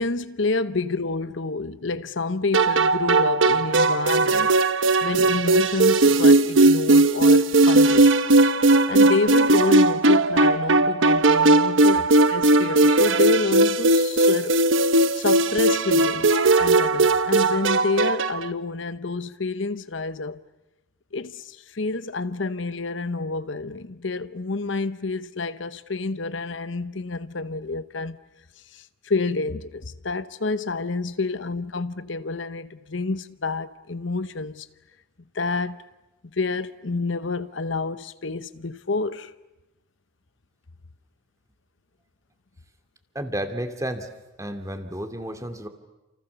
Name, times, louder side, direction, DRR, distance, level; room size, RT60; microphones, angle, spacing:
voice 1, 0.0-4.5 5.0-8.1 8.9-14.6 15.1-20.4 21.1-28.2 28.7-34.7 35.3-35.8 36.3-39.3, left 3 dB, 70° left, 1.0 m, -28 dB
sound 1, 2.5-18.5, right 2 dB, 80° right, 1.0 m, -18 dB
voice 2, 43.1-44.1 44.4-45.7, right 1 dB, 15° right, 2.4 m, -31 dB
29.0 x 28.5 x 6.9 m
head